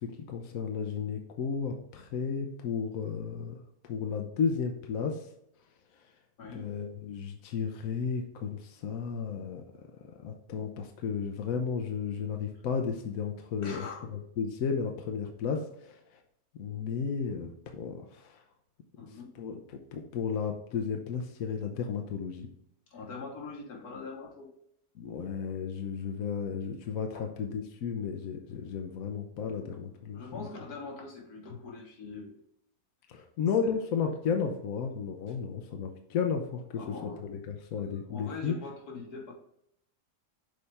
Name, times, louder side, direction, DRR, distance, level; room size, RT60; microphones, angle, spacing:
voice 1, 0.0-5.3 6.5-9.6 9.9-13.8 14.4-16.0 16.6-18.4 19.4-19.6 19.9-22.5 25.0-30.5 33.1-36.8 37.2-38.6, left 6 dB, 70° left, 4 dB, 1.1 m, -33 dB
voice 2, 6.4-6.7 13.6-14.1 19.0-19.3 22.9-24.5 27.1-27.3 30.1-32.4 33.6-33.8 36.8-37.3 37.7-39.3, left 4 dB, 85° left, 1 dB, 1.8 m, -43 dB
6.7 x 4.1 x 3.4 m, 0.74 s
omnidirectional pair, 1.6 m